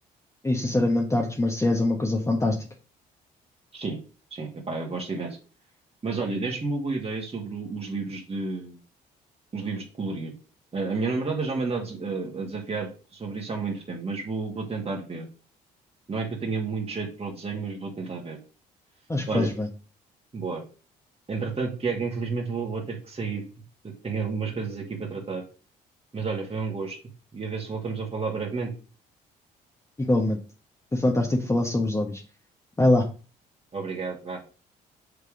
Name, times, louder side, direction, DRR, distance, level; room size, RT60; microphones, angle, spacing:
voice 1, 0.4-2.6 19.1-19.7 30.1-30.4 30.9-32.2 32.8-33.1, left 2 dB, 15° left, 1 dB, 1.3 m, -23 dB
voice 2, 4.3-5.4 6.0-8.8 9.5-10.3 10.7-15.3 16.1-18.4 19.3-19.5 20.3-20.6 21.3-23.4 23.8-25.4 26.1-27.0 27.3-28.7 33.7-34.4, right 4 dB, 30° right, 0 dB, 2.2 m, -31 dB
6.9 x 3.4 x 5.1 m, 0.35 s
hypercardioid pair, 55°, 20 cm